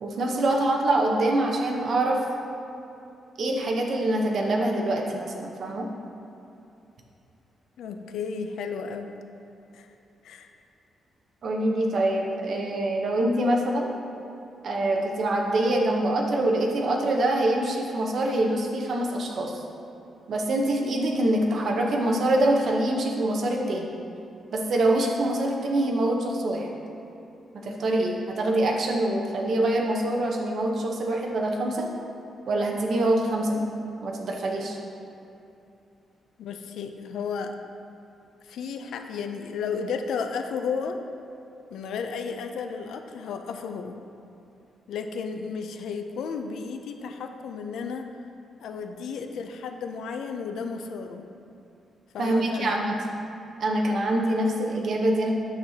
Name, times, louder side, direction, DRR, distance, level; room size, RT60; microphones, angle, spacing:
voice 1, 0.0-2.2 3.4-5.9 11.4-13.9 14.6-19.6 20.3-23.9 24.5-26.7 27.6-31.9 32.5-33.6 34.0-34.8 52.2-53.0 53.6-55.3, right 1 dB, 50° right, 0 dB, 0.8 m, -25 dB
voice 2, 7.8-9.2 9.7-9.9 10.2-10.5 36.4-37.6 38.4-41.0 41.7-44.0 44.9-48.1 48.6-51.2 52.1-52.8, left 5 dB, 90° left, 6 dB, 0.4 m, -33 dB
8.7 x 6.4 x 2.8 m, 2.8 s
wide cardioid pair, 175°, 0 cm